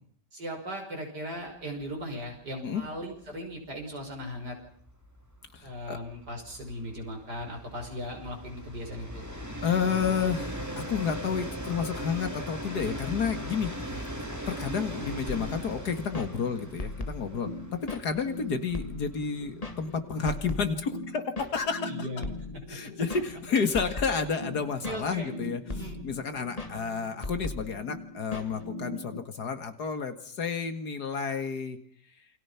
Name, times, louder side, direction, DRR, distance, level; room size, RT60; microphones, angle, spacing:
voice 1, 0.3-4.6 5.6-9.2 13.9-14.0 21.8-22.3 22.5-22.6 24.8-25.3 25.7-26.0, equal, 75° right, 2 dB, 6.7 m, -38 dB
Train, 1.8-2.0 2.3-2.4 2.7-20.1, equal, 10° right, 3.1 m, -39 dB
voice 2, 5.5-6.0 9.6-13.7 14.5-21.9 22.7-31.8, left 6 dB, 70° left, 9 dB, 2.4 m, -31 dB
sound 1, 15.3-29.2, left 2 dB, 20° left, 1.9 m, -39 dB
28.0 x 23.5 x 5.9 m, 0.62 s
omnidirectional pair, 1.8 m